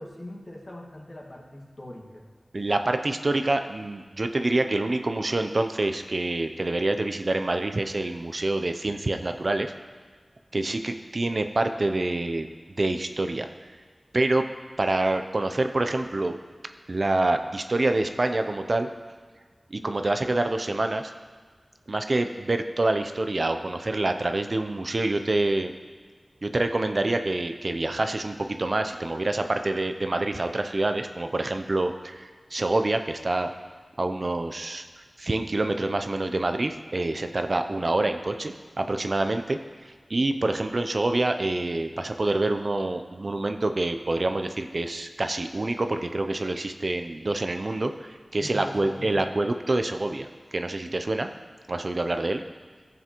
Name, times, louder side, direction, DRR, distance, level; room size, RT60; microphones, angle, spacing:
voice 1, 0.0-2.3 48.4-49.3, left 1 dB, 45° left, -2 dB, 1.8 m, -41 dB
voice 2, 2.5-9.7 10.5-12.5 12.8-13.5 14.1-14.4 14.8-16.4 16.9-18.9 19.7-21.1 21.9-25.7 26.4-33.5 34.0-39.6 39.8-50.3 50.5-51.3 51.7-52.4, right 2 dB, 55° right, 7 dB, 0.5 m, -26 dB
14.5 x 7.1 x 3.0 m, 1.5 s
wide cardioid pair, 50°, 0 cm